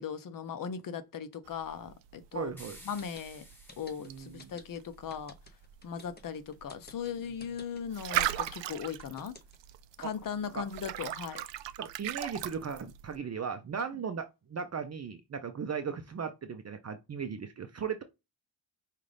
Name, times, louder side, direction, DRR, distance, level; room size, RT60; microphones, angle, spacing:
voice 1, 0.0-2.5 2.8-3.4 3.8-5.3 5.8-9.3 10.0-11.4, left 7 dB, 50° left, 0.7 m, -38 dB
sound 1, 1.4-13.2, right 13 dB, 85° right, 0.5 m, -39 dB
voice 2, 2.3-2.8 4.0-4.5 10.0-10.1 10.5-10.6 11.8-18.0, right 6 dB, 40° right, 0.6 m, -37 dB
sound 2, 2.6-5.0, equal, 5° left, 1.5 m, -54 dB
sound 3, 2.8-9.7, left 2 dB, 25° left, 0.8 m, -52 dB
5.5 x 2.4 x 3.3 m
wide cardioid pair, 135°, 43 cm